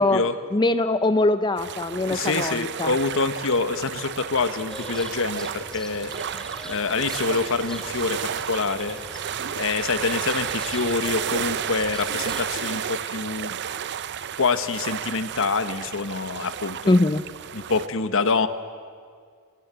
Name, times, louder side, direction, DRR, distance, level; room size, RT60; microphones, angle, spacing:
voice 1, 0.0-0.3 2.0-6.1 6.6-9.0 9.6-13.6 14.4-17.0 17.5-18.5, left 4 dB, 65° left, 11 dB, 1.1 m, -26 dB
voice 2, 0.5-2.9 16.9-17.2, left 2 dB, 20° left, 12 dB, 0.5 m, -22 dB
sound 1, 1.6-17.9, right 9 dB, 55° right, 0.6 m, -32 dB
sound 2, 4.7-12.6, equal, 5° left, 2.2 m, -41 dB
25.0 x 20.0 x 7.6 m, 2.1 s
head